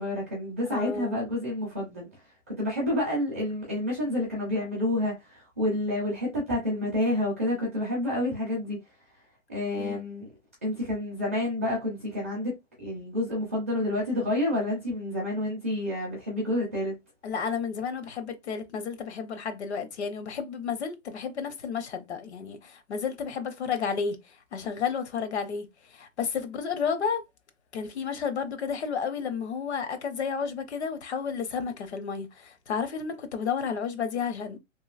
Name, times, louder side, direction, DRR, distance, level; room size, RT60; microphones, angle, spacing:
voice 1, 0.0-2.1 2.5-8.8 9.5-10.3 10.6-17.0, left 1 dB, 10° right, 0.4 m, -29 dB
voice 2, 0.7-1.2 9.8-10.0 17.2-27.2 27.7-34.6, left 6 dB, 60° left, 0.7 m, -32 dB
3.0 x 2.6 x 2.3 m
hypercardioid pair, 165°, 38 cm